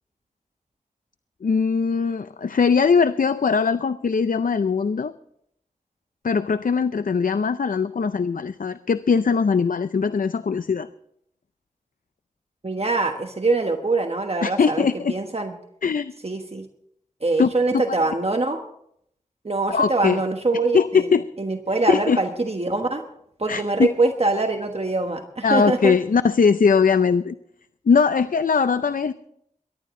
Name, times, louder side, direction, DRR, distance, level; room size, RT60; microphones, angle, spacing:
voice 1, 1.4-5.1 6.2-10.9 14.4-15.1 15.8-16.1 17.4-17.8 19.7-20.2 20.7-21.2 21.9-22.2 23.5-23.9 25.4-27.4 27.9-29.1, left 5 dB, 85° left, 12 dB, 0.5 m, -20 dB
voice 2, 12.6-15.5 16.2-16.7 17.2-18.6 19.4-23.0 23.4-25.9, right 2 dB, 45° right, 4 dB, 1.3 m, -24 dB
23.0 x 11.5 x 3.7 m, 0.71 s
wide cardioid pair, 45°, 14 cm